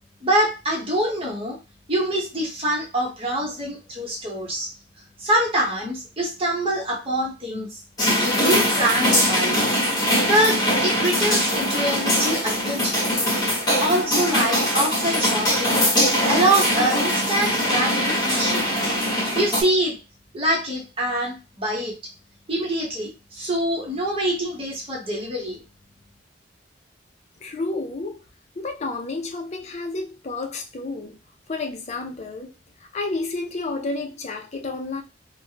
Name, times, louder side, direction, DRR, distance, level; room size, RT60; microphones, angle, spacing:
voice 1, 0.2-1.6 1.9-4.7 5.2-7.7 8.2-9.6 10.2-13.1 13.8-15.9 16.3-18.7 19.3-20.0 20.3-21.9 22.5-23.1 23.4-25.6, right 1 dB, 30° right, 0.9 m, -24 dB
sound 1, 8.0-19.6, equal, 20° left, 1.4 m, -22 dB
voice 2, 27.4-28.2 28.6-31.2 31.5-32.5 32.9-35.0, left 3 dB, 35° left, 0.5 m, -30 dB
3.2 x 2.2 x 2.8 m
head